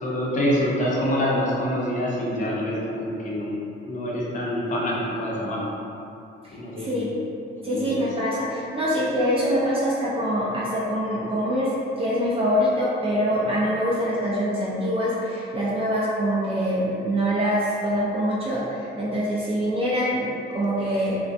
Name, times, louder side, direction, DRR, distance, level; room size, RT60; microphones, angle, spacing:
voice 1, 0.0-3.5 3.9-5.7 6.5-7.1 7.6-8.0, equal, 40° left, -5 dB, 0.6 m, -26 dB
voice 2, 6.4-7.1 7.6-20.2 20.5-21.2, equal, 30° right, -7 dB, 0.4 m, -24 dB
2.4 x 2.1 x 2.6 m, 2.6 s
cardioid pair, 90°, 20 cm